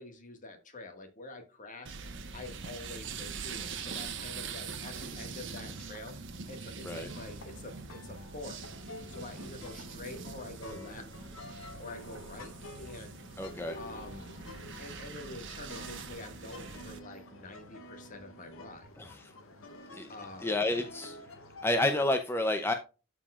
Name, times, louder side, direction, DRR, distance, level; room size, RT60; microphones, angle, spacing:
voice 1, 0.0-2.0 2.3-6.2 6.5-8.6 9.1-11.1 11.8-13.2 13.8-14.2 14.8-18.9 20.1-20.5, left 2 dB, 40° left, 5 dB, 1.8 m, -46 dB
sound 1, 1.9-17.0, right 5 dB, 65° right, 1.2 m, -43 dB
sound 2, 7.1-22.1, left 2 dB, 90° left, 1.6 m, -50 dB
voice 2, 13.4-13.8 19.0-19.3 19.9-20.1 20.4-21.2 21.6-22.7, left 1 dB, 10° left, 6 dB, 0.6 m, -30 dB
12.5 x 4.9 x 2.4 m, 0.31 s
head